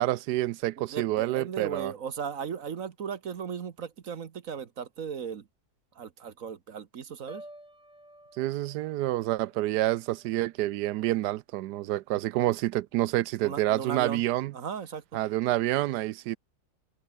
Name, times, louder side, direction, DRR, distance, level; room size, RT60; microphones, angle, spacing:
voice 1, 0.0-1.9 8.4-14.5 15.1-16.4, right 16 dB, 85° right, 1.2 m, -28 dB
voice 2, 0.9-5.4 6.0-7.4 13.4-14.2 14.5-15.0, right 7 dB, 55° right, 1.5 m, -36 dB
Piano, 7.3-11.2 11.6-12.0, right 1 dB, 25° right, 7.8 m, -53 dB
omnidirectional pair, 1.7 m